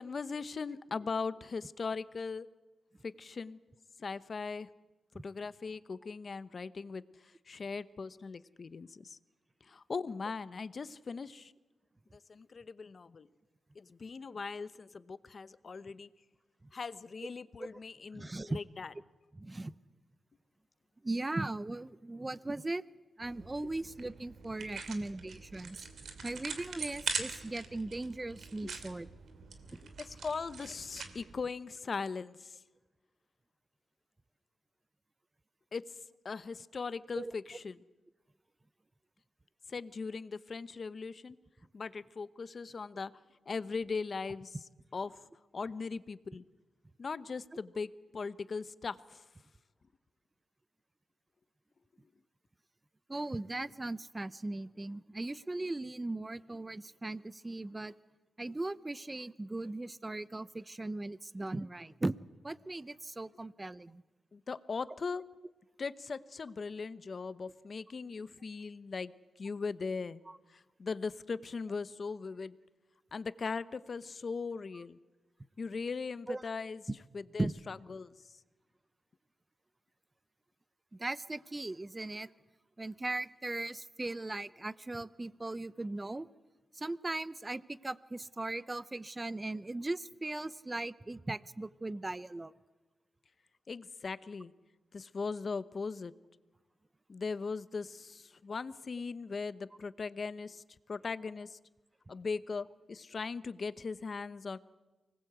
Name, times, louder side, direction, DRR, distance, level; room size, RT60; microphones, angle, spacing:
voice 1, 0.0-2.5 3.0-3.6 4.0-4.7 5.2-9.2 9.6-11.5 12.1-13.3 13.7-16.1 16.7-18.9 23.6-23.7 28.6-28.8 29.8-32.6 35.7-37.8 39.7-41.4 41.7-43.1 43.5-44.6 44.9-45.3 45.5-46.4 47.0-49.3 64.3-65.3 65.8-69.1 69.4-70.2 70.5-72.6 73.1-75.0 75.6-76.8 77.1-78.4 93.7-94.5 94.9-96.1 97.1-101.6 102.1-104.6, left 4 dB, 50° left, 15 dB, 0.9 m, -39 dB
voice 2, 18.1-18.6 19.3-19.7 21.0-22.8 23.2-25.8 26.2-29.1 37.1-37.3 53.1-57.9 58.4-62.2 62.4-64.0 70.3-70.4 76.3-76.4 77.4-77.5 81.0-82.3 82.8-86.3 86.7-92.5, right 2 dB, 20° right, 17 dB, 0.7 m, -38 dB
sound 1, 23.2-31.4, right 5 dB, 75° right, 2.6 m, -43 dB
24.5 x 19.5 x 8.1 m, 1.2 s
cardioid pair, 90°, 0 cm